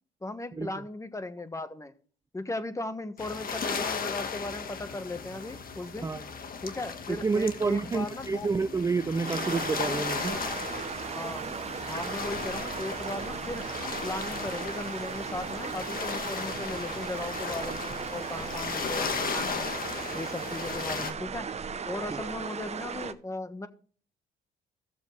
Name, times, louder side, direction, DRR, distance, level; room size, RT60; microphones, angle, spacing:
voice 1, 0.2-1.9 2.3-6.1 6.6-8.5 11.1-11.4 11.9-13.7 14.0-19.7 20.1-21.5 21.8-23.7, left 2 dB, 15° left, 1.3 m, -37 dB
sound 1, 3.2-21.1, left 6 dB, 55° left, 1.5 m, -36 dB
voice 2, 7.1-10.4, right 4 dB, 15° right, 0.4 m, -29 dB
sound 2, 9.2-23.1, right 6 dB, 40° right, 0.8 m, -37 dB
15.0 x 7.2 x 3.2 m
supercardioid pair, 70°, 18 cm